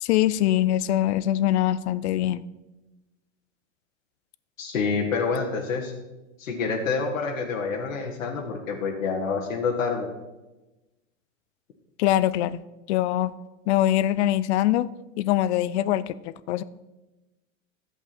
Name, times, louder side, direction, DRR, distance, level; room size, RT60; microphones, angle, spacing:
voice 1, 0.0-2.4 12.0-12.6 12.9-13.3 13.7-14.9 15.2-16.6, left 13 dB, 60° left, 16 dB, 0.6 m, -23 dB
voice 2, 4.6-5.9 6.4-10.1, left 4 dB, 85° left, -1 dB, 1.7 m, -27 dB
11.0 x 7.9 x 4.3 m, 1.1 s
hypercardioid pair, 110°, 39 cm